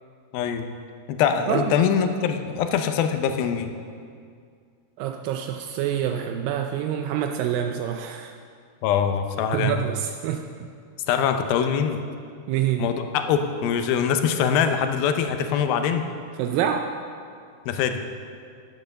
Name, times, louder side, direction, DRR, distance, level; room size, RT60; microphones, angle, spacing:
voice 1, 0.3-0.7 1.1-3.7 8.8-9.8 11.1-12.0 12.8-16.1 17.7-18.0, left 7 dB, 80° left, 7 dB, 2.3 m, -23 dB
voice 2, 5.0-8.3 9.5-10.7 12.5-12.9 16.4-16.9, right 9 dB, 85° right, 5 dB, 2.0 m, -26 dB
11.0 x 8.6 x 6.5 m, 2.2 s
omnidirectional pair, 4.7 m